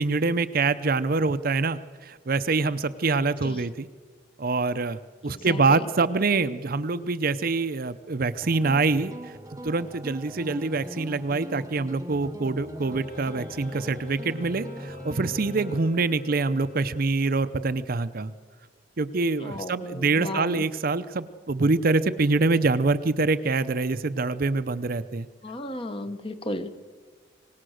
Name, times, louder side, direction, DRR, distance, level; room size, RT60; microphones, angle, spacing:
voice 1, 0.0-3.9 4.4-9.1 9.6-18.3 19.0-25.3, right 3 dB, 50° right, 12 dB, 0.7 m, -25 dB
voice 2, 5.2-5.9 19.4-20.6 25.4-26.7, left 1 dB, 30° left, 9 dB, 1.1 m, -35 dB
sound 1, 8.4-15.8, right 1 dB, 15° right, 0.9 m, -40 dB
Wind instrument woodwind instrument, 12.8-17.4, left 7 dB, 50° left, 3.7 m, -46 dB
25.5 x 18.5 x 6.5 m, 1.5 s
head